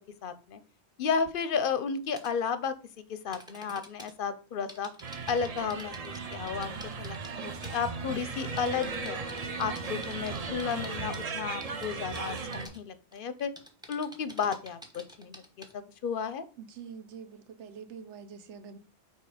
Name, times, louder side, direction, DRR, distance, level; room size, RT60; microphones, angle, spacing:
voice 1, 0.2-0.6 1.0-2.7 3.1-4.9 5.3-9.2 9.6-13.5 13.9-16.4, left 6 dB, 60° left, 0.7 m, -33 dB
sound 1, 2.2-2.3 3.3-4.1 4.7-7.4 7.6-7.9 8.3-11.2 11.6-12.8 13.1-15.7, equal, 5° right, 0.8 m, -48 dB
sound 2, 5.0-12.7, right 4 dB, 40° right, 0.6 m, -37 dB
voice 2, 16.6-18.8, right 6 dB, 80° right, 1.0 m, -45 dB
5.6 x 4.3 x 4.8 m
omnidirectional pair, 1.2 m